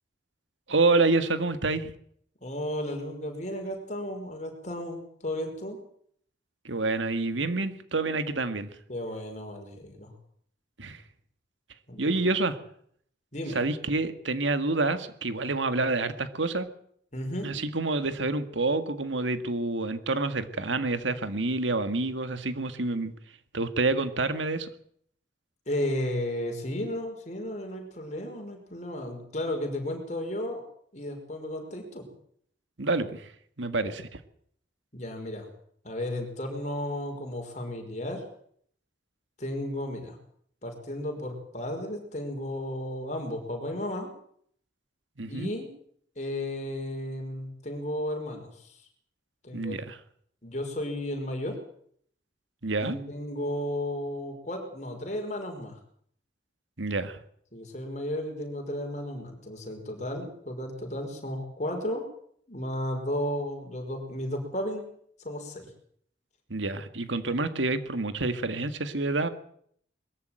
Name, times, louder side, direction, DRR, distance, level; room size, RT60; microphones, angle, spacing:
voice 1, 0.7-1.9 6.6-8.7 10.8-11.0 12.0-12.6 13.6-16.7 17.4-23.1 23.5-24.7 32.8-33.3 33.6-34.1 45.2-45.5 49.5-50.0 52.6-53.0 56.8-57.2 66.5-69.3, right 3 dB, 85° right, 11 dB, 1.8 m, -28 dB
voice 2, 2.4-5.8 8.9-10.1 11.9-12.2 13.3-13.6 17.1-17.6 25.7-30.6 30.9-32.1 33.8-33.9 34.9-35.5 35.8-38.2 39.4-40.2 40.6-44.1 45.3-45.7 46.2-48.8 49.4-49.8 50.4-51.6 52.8-55.8 57.5-62.0 62.5-64.8 65.2-65.7, left 1 dB, 40° left, 3 dB, 5.3 m, -34 dB
22.0 x 14.0 x 9.1 m, 0.65 s
head